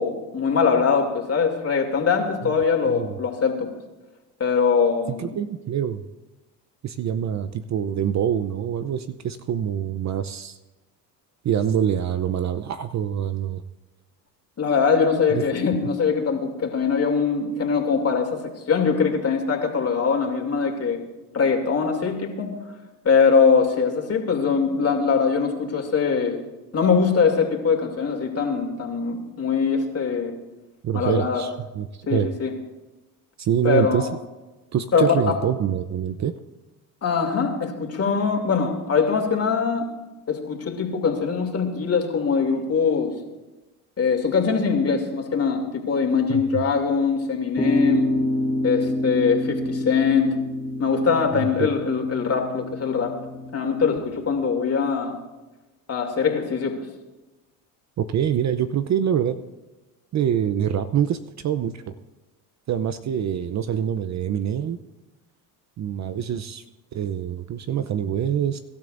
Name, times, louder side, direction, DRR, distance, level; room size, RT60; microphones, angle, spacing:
voice 1, 0.0-3.7 4.4-5.3 14.6-21.0 21.3-22.5 23.0-26.4 26.7-30.4 30.9-31.4 32.1-32.5 33.6-34.1 34.9-35.4 37.0-39.9 40.3-43.2 44.0-48.1 48.6-50.4 50.8-53.2 53.5-55.2 55.9-56.8, left 5 dB, 35° left, 2 dB, 2.8 m, -22 dB
voice 2, 5.1-6.0 6.8-10.6 11.4-13.6 15.3-15.4 30.8-32.3 33.4-34.1 34.7-36.3 46.3-46.4 51.3-51.7 58.0-59.4 60.1-61.7 62.7-64.8 65.8-66.6 66.9-68.6, right 9 dB, 40° right, 11 dB, 0.7 m, -25 dB
sound 1, 47.6-54.0, left 1 dB, 10° left, 1.4 m, -27 dB
24.5 x 12.5 x 2.6 m, 1.1 s
supercardioid pair, 85°, 44 cm